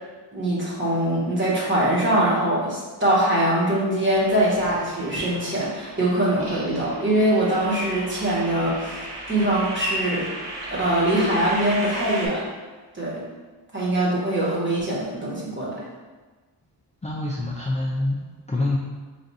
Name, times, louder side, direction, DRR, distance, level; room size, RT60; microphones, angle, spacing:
voice 1, 0.3-10.3 10.7-12.5 12.9-13.2 13.7-15.8, right 1 dB, 25° right, -7 dB, 1.3 m, -23 dB
sound 1, 4.1-12.3, right 1 dB, 50° right, 1.1 m, -36 dB
voice 2, 17.0-18.8, left 2 dB, 20° left, -3 dB, 0.4 m, -26 dB
3.5 x 2.6 x 4.0 m, 1.3 s
wide cardioid pair, 105°, 42 cm